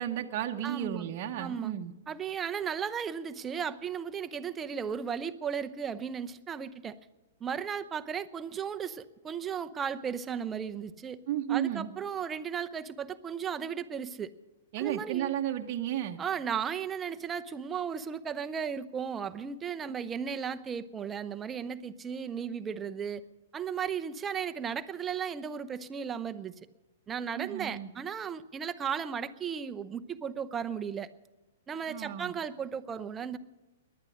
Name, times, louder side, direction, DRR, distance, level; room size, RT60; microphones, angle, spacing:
voice 1, 0.0-1.9 11.3-11.9 14.7-16.2 27.3-27.9 31.9-32.3, right 11 dB, 45° right, 3 dB, 1.0 m, -33 dB
voice 2, 0.6-1.1 1.4-1.7 2.1-7.0 7.4-11.2 11.5-14.3 14.8-15.3 16.2-23.2 23.5-26.5 27.1-31.1 31.7-33.4, right 7 dB, 20° right, 10 dB, 0.8 m, -35 dB
19.0 x 11.5 x 6.3 m, 1.1 s
figure-of-eight pair, 110°, 0 cm